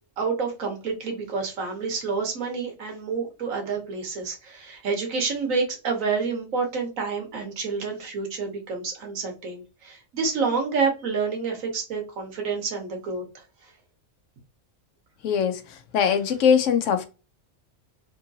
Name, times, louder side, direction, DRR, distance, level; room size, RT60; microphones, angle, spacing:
voice 1, 0.2-13.2, right 4 dB, 90° right, 1.5 m, -28 dB
voice 2, 15.2-15.6 15.9-17.1, left 7 dB, 75° left, 0.9 m, -21 dB
3.6 x 2.7 x 2.7 m
omnidirectional pair, 1.3 m